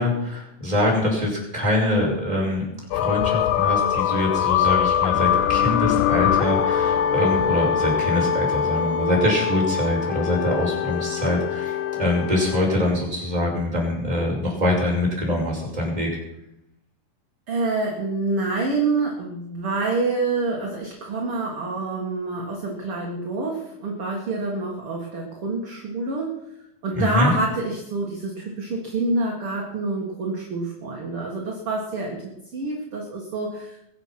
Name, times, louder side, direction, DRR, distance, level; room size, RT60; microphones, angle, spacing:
voice 1, 0.0-2.7 2.9-16.1 26.9-27.3, left 1 dB, 10° right, -3 dB, 4.7 m, -24 dB
sound 1, 2.9-12.6, left 9 dB, 80° left, 2.2 m, -23 dB
voice 2, 17.5-26.4 26.8-33.8, right 3 dB, 45° right, -1 dB, 2.6 m, -27 dB
22.0 x 8.1 x 6.0 m, 0.81 s
omnidirectional pair, 3.8 m